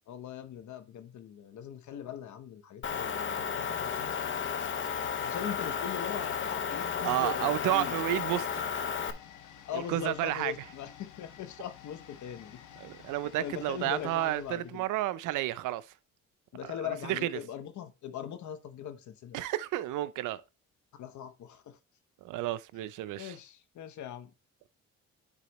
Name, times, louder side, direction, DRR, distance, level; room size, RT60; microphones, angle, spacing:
voice 1, 0.1-4.2 5.2-7.9 9.7-12.6 13.4-14.8 16.5-19.4 21.0-21.8 23.2-24.3, left 9 dB, 70° left, 1.0 m, -40 dB
Motor vehicle (road) / Engine, 2.8-9.1, left 7 dB, 40° left, 0.7 m, -33 dB
sound 1, 3.8-15.5 15.8-15.9, left 9 dB, 90° left, 1.2 m, -52 dB
voice 2, 7.0-8.5 9.7-10.5 12.8-15.9 16.6-17.4 19.3-20.4 22.2-23.4, right 15 dB, 85° right, 0.5 m, -31 dB
9.9 x 4.1 x 3.0 m
cardioid pair, 90°, 30 cm